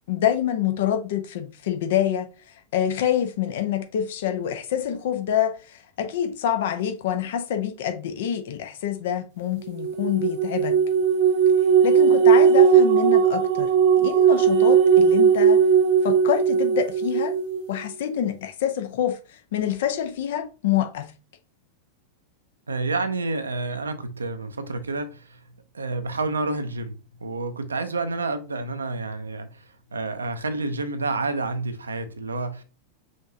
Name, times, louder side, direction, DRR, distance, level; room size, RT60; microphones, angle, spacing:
voice 1, 0.1-2.3 2.7-10.8 11.8-13.7 14.0-15.6 16.0-17.3 17.7-19.2 19.5-21.1, left 10 dB, 55° left, 0.9 m, -26 dB
sound 1, 9.8-17.6, right 7 dB, 45° right, 0.9 m, -18 dB
voice 2, 22.7-25.4 25.7-29.6 29.9-32.6, right 3 dB, 75° right, 0.6 m, -29 dB
5.2 x 3.7 x 2.7 m
figure-of-eight pair, 90°, 0 cm